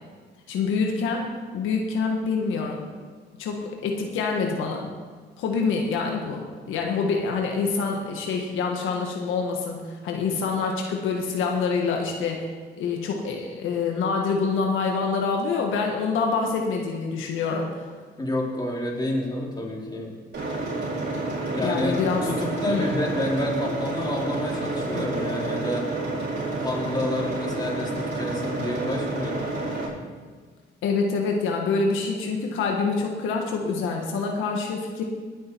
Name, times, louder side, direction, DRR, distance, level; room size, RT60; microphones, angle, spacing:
voice 1, 0.5-2.8 3.4-4.9 5.4-12.5 12.8-17.9 21.6-22.3 22.7-23.0 30.8-35.0, left 4 dB, 85° left, 1 dB, 1.6 m, -26 dB
voice 2, 18.2-20.2 21.5-25.9 26.6-29.5, left 1 dB, 20° left, -2 dB, 3.4 m, -29 dB
sound 1, 20.3-29.9, right 2 dB, 60° right, 4.3 m, -29 dB
18.5 x 7.6 x 4.6 m, 1.5 s
cardioid pair, 90°, 20 cm